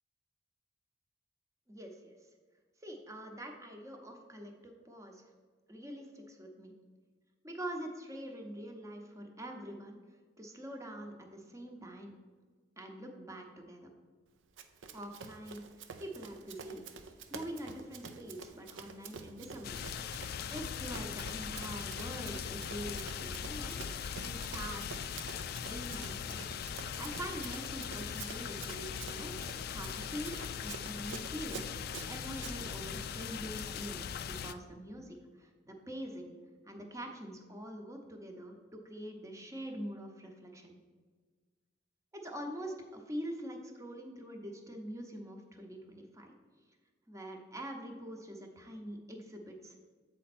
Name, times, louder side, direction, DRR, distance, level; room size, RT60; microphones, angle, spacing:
voice 1, 1.7-2.1 2.8-5.2 5.7-6.7 7.4-10.0 10.4-12.1 12.8-13.9 14.9-16.8 17.3-19.8 20.5-23.8 24.2-25.2 25.6-26.4 27.0-36.3 36.6-40.8 42.1-46.4 47.1-49.8, equal, 15° right, 3 dB, 0.7 m, -44 dB
Run, 14.6-32.6, right 5 dB, 80° right, 0.5 m, -48 dB
sound 1, 19.6-34.5, left 7 dB, 55° left, 0.3 m, -40 dB
7.6 x 4.3 x 4.2 m, 1.5 s
head